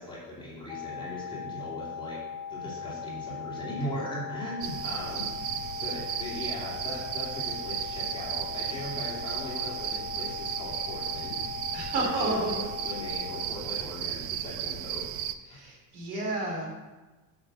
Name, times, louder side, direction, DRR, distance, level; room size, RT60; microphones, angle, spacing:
voice 1, 0.0-2.2 2.5-11.4 12.0-15.1 15.5-15.6, left 1 dB, 10° left, -6 dB, 2.8 m, -39 dB
sound 1, 0.7-13.5, left 7 dB, 75° left, 1.2 m, -39 dB
sound 2, 4.6-15.3, right 10 dB, 35° right, 0.4 m, -35 dB
voice 2, 11.7-12.7 15.5-16.7, right 2 dB, 55° right, -1 dB, 3.5 m, -31 dB
8.0 x 6.4 x 7.0 m, 1.2 s
cardioid pair, 155°, 45 cm